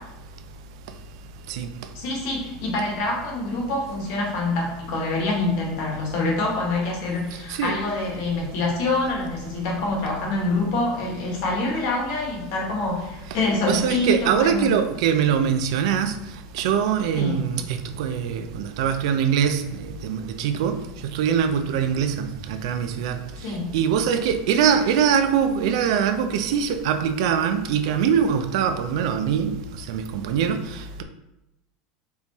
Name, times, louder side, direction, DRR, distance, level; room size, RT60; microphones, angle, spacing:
voice 1, 1.9-14.7 17.1-17.4 23.4-23.7, left 2 dB, 60° left, 1.4 m, -26 dB
voice 2, 13.7-16.2 16.5-20.8 21.1-23.2 23.7-29.6 29.9-31.0, right 8 dB, 75° right, 0.5 m, -23 dB
4.2 x 3.7 x 3.0 m
supercardioid pair, 165°, 3 cm